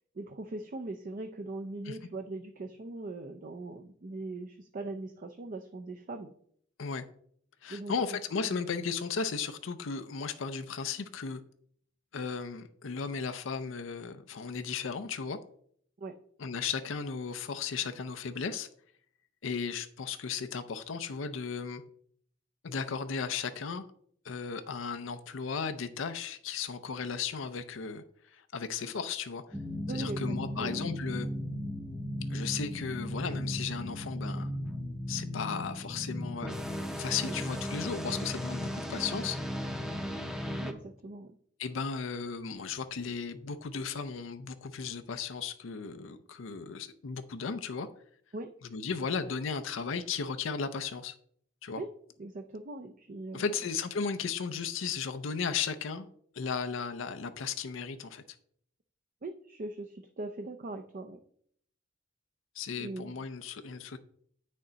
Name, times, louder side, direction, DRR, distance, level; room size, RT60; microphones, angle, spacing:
voice 1, 0.1-6.3 7.7-7.9 8.4-8.6 16.0-16.2 29.9-30.8 37.2-37.3 40.6-41.3 48.3-48.5 51.8-51.9 52.2-53.5 59.2-61.2 62.8-63.1, right 2 dB, 45° right, 7 dB, 0.5 m, -40 dB
voice 2, 7.6-11.4 12.1-15.4 16.4-18.7 19.4-21.8 22.6-23.9 24.2-29.4 29.9-31.3 32.3-34.5 35.1-36.6 37.0-39.4 41.6-47.9 48.7-51.1 51.6-51.8 53.3-56.1 56.3-58.2 62.5-64.0, left 5 dB, 85° left, 9 dB, 0.5 m, -35 dB
sound 1, 29.5-40.7, equal, 5° right, 0.7 m, -36 dB
8.5 x 6.4 x 3.9 m, 0.64 s
head